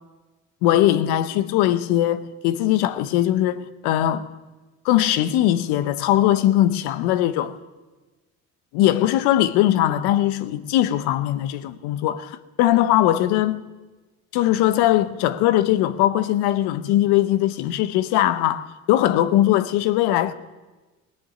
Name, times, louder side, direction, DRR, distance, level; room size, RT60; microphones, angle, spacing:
voice 1, 0.6-4.3 4.8-7.5 8.7-13.6 14.3-20.3, left 13 dB, 80° left, 0.9 m, -20 dB
17.0 x 7.0 x 9.5 m
supercardioid pair, 70°, 39 cm